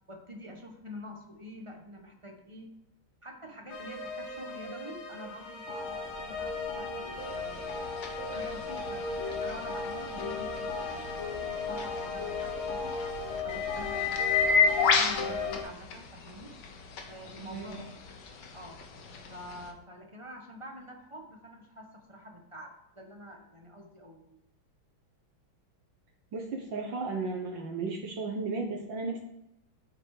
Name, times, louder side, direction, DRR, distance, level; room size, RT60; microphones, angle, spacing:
voice 1, 0.1-2.7 3.2-7.9 8.3-13.0 13.4-14.1 14.9-16.6 17.1-18.1 18.5-18.8 19.3-24.4, equal, 20° right, 2 dB, 1.1 m, -47 dB
sound 1, 3.7-15.6, left 4 dB, 80° left, 2.4 m, -36 dB
sound 2, 7.2-19.7, left 5 dB, 60° left, 1.6 m, -33 dB
voice 2, 26.3-29.2, right 3 dB, 65° right, 1 dB, 1.9 m, -34 dB
8.7 x 6.4 x 4.9 m, 0.86 s
omnidirectional pair, 2.3 m